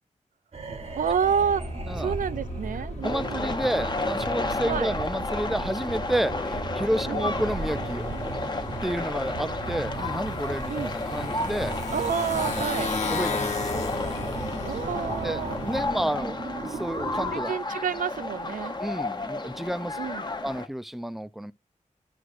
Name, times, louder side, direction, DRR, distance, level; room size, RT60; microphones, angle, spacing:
sound 1, 0.5-17.4, right 3 dB, 50° right, 0.8 m, -37 dB
Motorcycle, 0.7-16.1, left 4 dB, 60° left, 1.0 m, -37 dB
voice 1, 1.0-1.6 2.0-3.5 4.6-5.0 7.1-7.4 10.7-10.9 11.9-12.9 14.6-15.6 17.3-18.8 20.0-20.2, right 7 dB, 80° right, 0.4 m, -29 dB
sound 2, 3.0-20.7, left 2 dB, 35° left, 0.7 m, -32 dB
voice 2, 3.0-8.0 8.8-11.8 13.1-14.6 15.2-16.4 16.6-17.5 18.8-20.0 20.4-21.5, right 1 dB, ahead, 0.4 m, -31 dB
11.0 x 6.2 x 2.5 m
wide cardioid pair, 100°, 13 cm